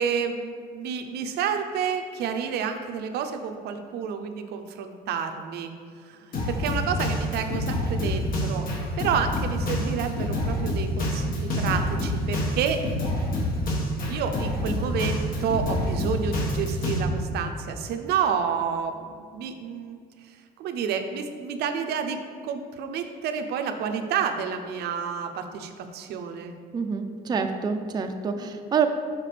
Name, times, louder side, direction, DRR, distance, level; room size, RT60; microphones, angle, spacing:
voice 1, 0.0-5.7 6.0-8.7 9.0-12.8 14.1-20.0 20.2-26.5 28.4-28.6, right 7 dB, 75° right, 6 dB, 0.5 m, -30 dB
Drum kit, 6.3-17.0, left 1 dB, 55° left, 1.5 m, -27 dB
voice 2, 26.7-28.9, right 6 dB, 25° right, 5 dB, 0.4 m, -27 dB
5.9 x 5.8 x 3.3 m, 2.1 s
cardioid pair, 110°, 17 cm